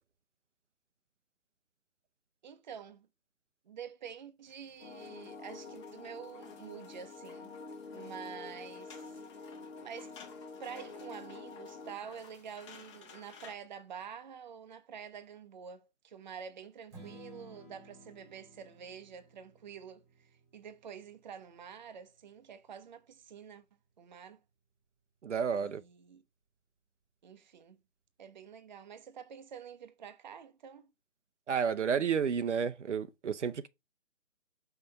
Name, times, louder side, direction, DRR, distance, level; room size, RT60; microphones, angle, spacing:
voice 1, 2.4-3.1 3.7-7.5 7.9-9.1 9.8-10.1 10.6-23.6 24.0-24.4 25.5-26.2 27.2-27.8 28.2-30.9, right 7 dB, 35° right, 0.7 m, -48 dB
sound 1, 4.4-13.6, left 6 dB, 25° left, 1.1 m, -57 dB
sound 2, 4.8-12.0, left 4 dB, 60° left, 1.2 m, -47 dB
Strum, 16.9-23.2, right 1 dB, 10° right, 1.3 m, -57 dB
voice 2, 25.2-25.8 31.5-33.7, right 7 dB, 70° right, 0.7 m, -31 dB
5.8 x 3.3 x 5.2 m
figure-of-eight pair, 145°, 37 cm